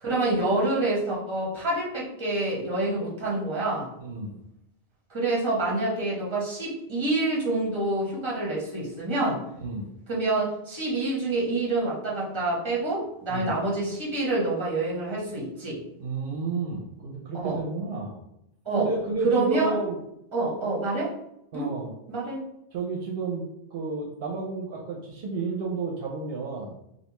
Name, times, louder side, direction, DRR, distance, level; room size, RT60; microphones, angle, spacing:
voice 1, 0.0-3.9 5.1-9.4 10.1-15.8 17.3-17.6 18.6-18.9 19.2-19.7 20.3-21.1 21.5-21.7 22.1-22.4, right 2 dB, 30° right, -4 dB, 1.0 m, -27 dB
voice 2, 4.0-4.4 9.6-9.9 13.3-13.5 16.0-18.2 18.7-20.0 21.5-21.9 22.7-23.4 23.7-26.7, right 3 dB, 70° right, -1 dB, 0.8 m, -31 dB
3.2 x 2.7 x 2.9 m, 0.82 s
omnidirectional pair, 1.0 m